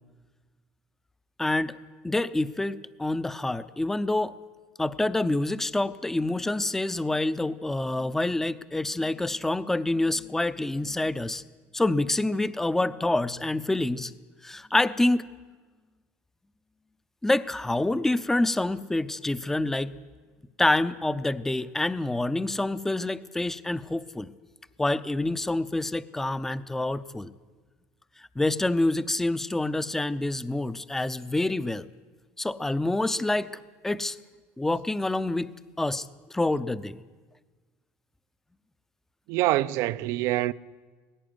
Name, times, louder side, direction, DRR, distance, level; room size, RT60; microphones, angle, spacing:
voice 1, 1.4-1.7 2.0-4.3 4.8-11.4 11.7-14.1 14.4-15.3 17.2-19.9 20.6-24.3 24.8-27.3 28.4-31.9 32.4-33.5 33.8-34.2 34.6-37.0, left 2 dB, 5° left, 0.6 m, -27 dB
voice 2, 39.3-40.5, right 16 dB, 65° right, 0.6 m, -25 dB
18.0 x 16.5 x 9.6 m
cardioid pair, 135°, 5 cm